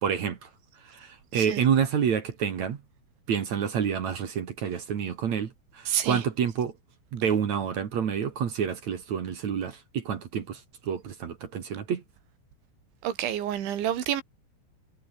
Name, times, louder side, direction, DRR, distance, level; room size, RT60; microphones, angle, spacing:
voice 1, 0.0-0.5 0.9-2.8 3.3-6.7 7.1-12.0, right 7 dB, 50° right, 2.6 m, -28 dB
voice 2, 5.9-6.2 13.0-14.2, right 11 dB, 85° right, 4.9 m, -28 dB
omnidirectional pair, 5.2 m